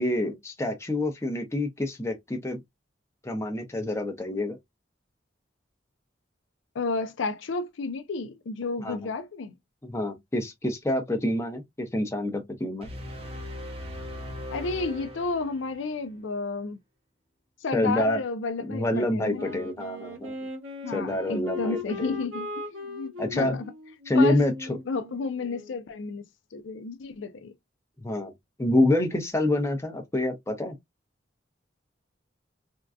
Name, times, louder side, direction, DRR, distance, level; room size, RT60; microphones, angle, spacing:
voice 1, 0.0-2.6 3.2-4.6 8.8-9.0 9.8-12.9 17.7-18.2 18.6-20.3 20.9-22.2 23.2-23.6 24.1-24.8 28.0-28.3 28.6-30.8, left 1 dB, 15° left, 0.7 m, -27 dB
voice 2, 6.7-9.5 14.5-16.8 17.6-19.6 20.8-23.6 24.1-24.4 24.9-26.2 26.5-27.5, left 3 dB, 75° left, 0.5 m, -32 dB
sound 1, 12.8-16.0, left 1 dB, 30° right, 0.6 m, -39 dB
Wind instrument woodwind instrument, 19.3-25.9, left 3 dB, 90° right, 1.3 m, -39 dB
3.6 x 2.3 x 2.4 m
head